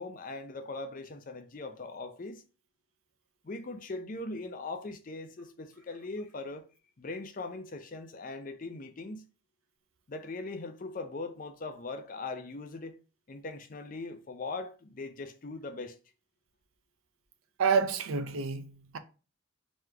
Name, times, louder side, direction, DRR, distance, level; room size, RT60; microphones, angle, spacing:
voice 1, 0.0-2.4 3.4-6.6 7.0-9.2 10.1-13.0 13.3-16.0, left 3 dB, 40° left, 0.5 m, -40 dB
voice 2, 17.6-19.0, right 5 dB, 80° right, 0.5 m, -28 dB
3.7 x 3.1 x 3.3 m
head